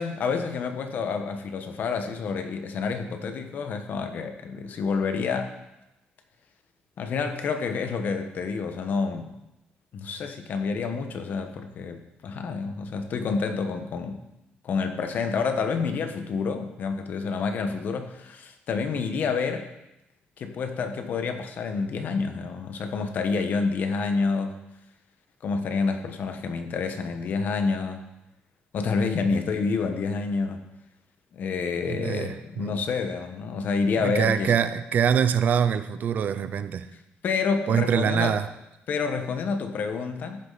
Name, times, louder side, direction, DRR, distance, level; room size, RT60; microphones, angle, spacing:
voice 1, 0.0-5.5 7.0-9.3 9.9-14.2 14.6-19.7 20.4-24.5 25.4-28.0 28.7-30.6 31.3-34.5 37.2-38.3 38.9-40.4, left 5 dB, 55° left, 6 dB, 1.3 m, -28 dB
voice 2, 31.8-32.8 34.0-36.9 37.7-38.5, right 8 dB, 50° right, 12 dB, 0.6 m, -24 dB
14.5 x 9.8 x 4.2 m, 0.91 s
cardioid pair, 150°, 4 cm